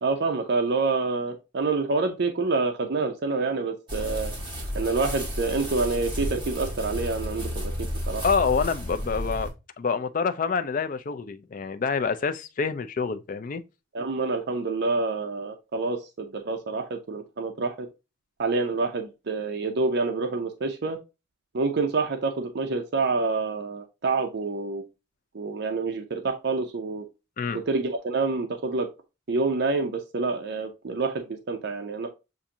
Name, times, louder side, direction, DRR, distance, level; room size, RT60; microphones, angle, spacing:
voice 1, 0.0-4.3 4.7-8.2 13.9-17.9 18.4-21.0 21.5-24.8 25.3-27.0 27.7-28.9 29.3-32.1, right 3 dB, 50° right, 0.5 m, -27 dB
sound 1, 3.9-9.5, equal, 25° right, 1.9 m, -32 dB
voice 2, 8.2-9.5 9.8-13.6 27.4-27.6, left 5 dB, 40° left, 0.3 m, -27 dB
7.0 x 2.5 x 2.7 m
head